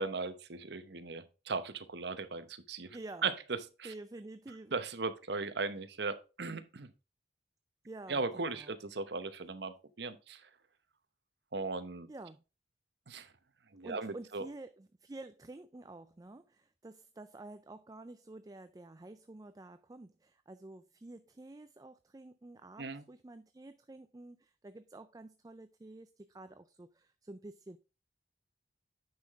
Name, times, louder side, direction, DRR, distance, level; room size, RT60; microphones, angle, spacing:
voice 1, 0.0-3.0 3.2-3.9 4.7-6.9 8.1-10.5 11.5-12.1 13.1-13.3 13.7-14.5 22.8-23.0, right 4 dB, 65° right, 0.9 m, -38 dB
voice 2, 2.9-3.3 3.8-4.7 7.9-8.7 12.1-12.4 13.8-27.8, right 2 dB, 20° right, 0.4 m, -49 dB
9.5 x 5.7 x 3.5 m
head